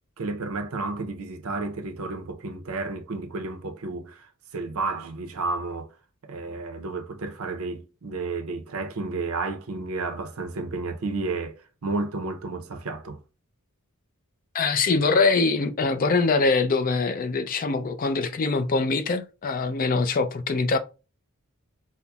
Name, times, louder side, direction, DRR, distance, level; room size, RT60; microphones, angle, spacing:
voice 1, 0.2-6.0 6.2-13.2, right 3 dB, 70° right, 0.6 m, -32 dB
voice 2, 14.5-20.8, left 4 dB, 40° left, 0.4 m, -23 dB
5.4 x 2.0 x 2.3 m
head